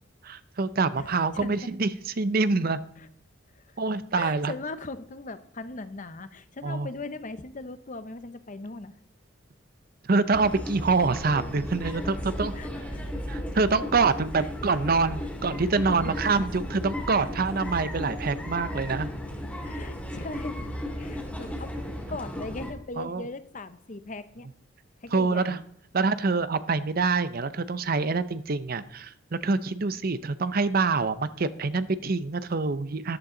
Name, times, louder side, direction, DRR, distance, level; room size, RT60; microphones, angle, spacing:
voice 1, 0.2-1.9 2.2-2.8 3.8-4.5 6.6-6.9 10.1-12.5 13.3-19.1 23.0-23.2 25.1-25.6 25.9-33.2, right 4 dB, 50° right, 14 dB, 0.6 m, -26 dB
voice 2, 1.0-1.6 3.0-3.1 3.5-3.8 4.1-8.9 11.8-12.2 12.5-13.2 14.3-14.8 15.6-16.2 17.1-17.3 19.6-20.6 21.0-21.8 22.1-24.5 25.0-25.7, left 3 dB, 40° left, 12 dB, 0.8 m, -39 dB
sound 1, 10.3-22.7, equal, 5° left, 2.6 m, -35 dB
14.0 x 11.5 x 3.9 m, 0.69 s
head